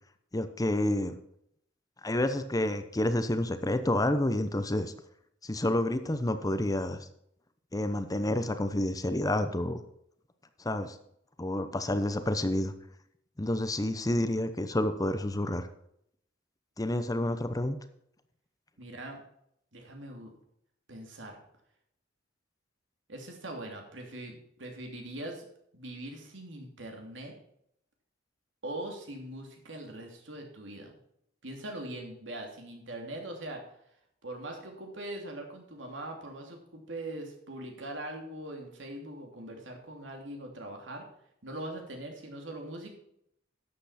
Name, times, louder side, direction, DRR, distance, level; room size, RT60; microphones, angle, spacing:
voice 1, 0.3-1.1 2.0-4.9 5.4-7.1 7.7-9.8 10.6-11.0 11.4-12.7 13.4-15.7 16.8-17.8, left 1 dB, 20° left, 10 dB, 0.8 m, -29 dB
voice 2, 18.8-19.2 19.7-20.3 20.9-21.4 23.1-25.4 25.7-27.3 28.6-30.9 31.4-33.6 34.2-41.1 41.4-42.9, right 1 dB, 90° right, 2 dB, 2.9 m, -41 dB
12.0 x 7.9 x 4.3 m, 0.73 s
head